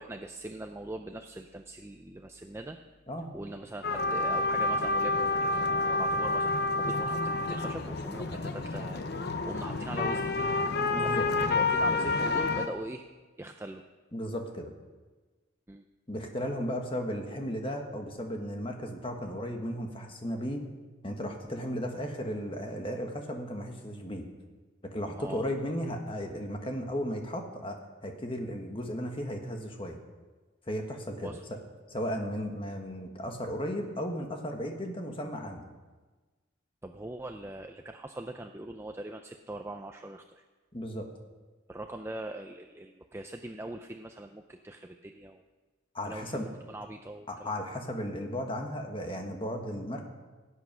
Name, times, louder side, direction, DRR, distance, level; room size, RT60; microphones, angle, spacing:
voice 1, 0.0-2.8 3.3-9.0 9.4-10.6 11.0-13.0 13.4-13.8 15.7-15.8 25.2-25.4 31.2-31.4 36.8-40.4 41.7-45.4 46.0-47.5, right 1 dB, 15° right, 5 dB, 0.4 m, -41 dB
sound 1, 3.8-12.7, left 2 dB, 55° left, 0.8 m, -29 dB
voice 2, 10.9-11.2 14.1-14.7 16.1-20.7 21.0-24.2 24.9-27.8 28.0-30.0 30.7-31.4 31.9-35.6 40.7-41.1 45.9-46.5 47.3-50.1, equal, 25° left, 3 dB, 1.4 m, -35 dB
16.5 x 8.3 x 6.1 m, 1.3 s
head